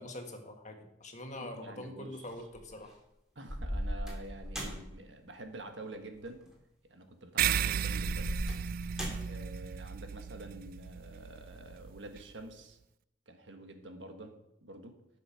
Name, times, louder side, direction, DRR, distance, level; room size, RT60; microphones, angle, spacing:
voice 1, 0.0-3.0, left 1 dB, 40° left, 4 dB, 1.6 m, -44 dB
voice 2, 1.4-2.3 3.3-6.4 6.9-8.3 9.2-12.8 13.3-14.3 14.6-15.0, right 2 dB, 75° right, 5 dB, 1.5 m, -47 dB
sound 1, 2.3-2.8 3.5-5.0 6.2-6.4 7.8-9.4, equal, 5° right, 3.3 m, -38 dB
sound 2, 7.4-12.2, right 9 dB, 50° right, 0.3 m, -35 dB
12.0 x 6.7 x 5.8 m, 0.85 s
head